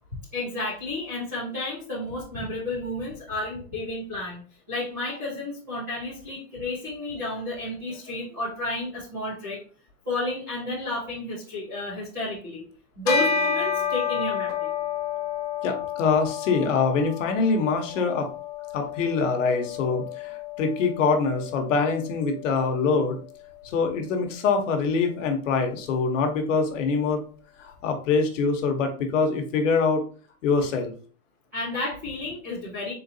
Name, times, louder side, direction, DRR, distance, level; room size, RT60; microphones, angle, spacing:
voice 1, 0.3-4.4 4.7-9.6 10.1-12.6 13.0-14.7 31.5-32.9, left 2 dB, 15° right, -10 dB, 0.4 m, -31 dB
Bell, 13.1-22.7, left 6 dB, 25° left, 0.6 m, -31 dB
voice 2, 15.6-18.3 18.7-23.2 23.6-27.2 27.6-30.0 30.4-30.9, left 4 dB, 50° left, 4 dB, 1.0 m, -24 dB
4.2 x 3.9 x 2.7 m, 0.41 s
supercardioid pair, 175°, 47 cm